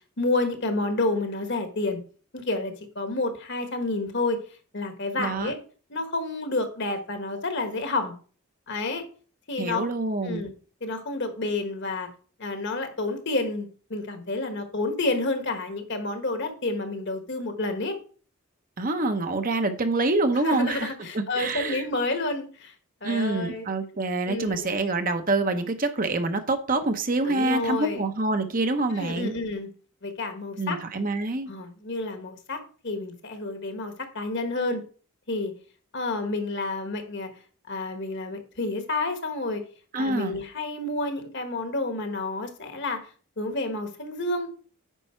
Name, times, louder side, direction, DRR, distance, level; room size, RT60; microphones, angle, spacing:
voice 1, 0.2-2.0 2.3-4.4 4.7-5.6 5.9-8.1 8.7-9.0 9.5-9.9 10.2-10.5 10.8-12.1 12.4-18.0 20.4-22.7 23.0-23.6 24.3-24.7 27.2-28.0 28.9-29.7 30.0-30.8 31.5-34.8 35.3-35.5 35.9-37.3 37.7-39.6 40.0-43.0 43.4-44.5, left 2 dB, 50° left, 7 dB, 1.3 m, -29 dB
voice 2, 5.2-5.5 9.6-10.5 18.8-21.8 23.0-29.3 30.6-31.5 39.9-40.3, right 2 dB, 40° right, 8 dB, 0.8 m, -26 dB
9.2 x 5.5 x 4.4 m, 0.40 s
head